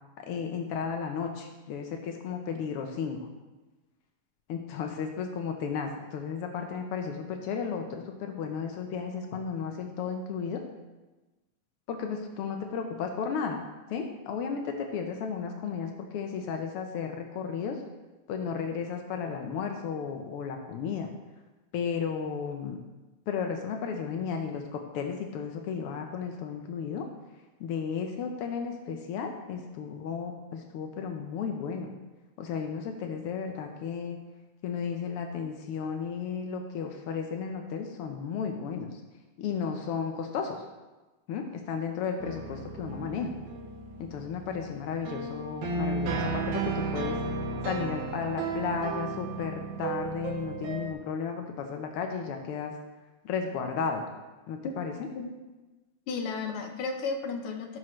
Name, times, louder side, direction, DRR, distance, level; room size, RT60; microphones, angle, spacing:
voice 1, 0.2-3.2 4.5-10.6 11.9-13.6 13.9-17.8 18.3-21.1 21.7-22.8 23.3-27.1 27.6-31.9 32.4-34.2 34.6-39.0 39.4-40.6 41.3-43.3 44.0-47.2 47.6-52.7 53.2-54.0 54.5-54.9, left 6 dB, 85° left, 4 dB, 1.2 m, -34 dB
sound 1, 42.2-50.9, right 3 dB, 70° right, 2.4 m, -34 dB
voice 2, 56.1-57.8, left 4 dB, 60° left, 3 dB, 1.5 m, -33 dB
16.5 x 6.3 x 3.2 m, 1.1 s
omnidirectional pair, 3.6 m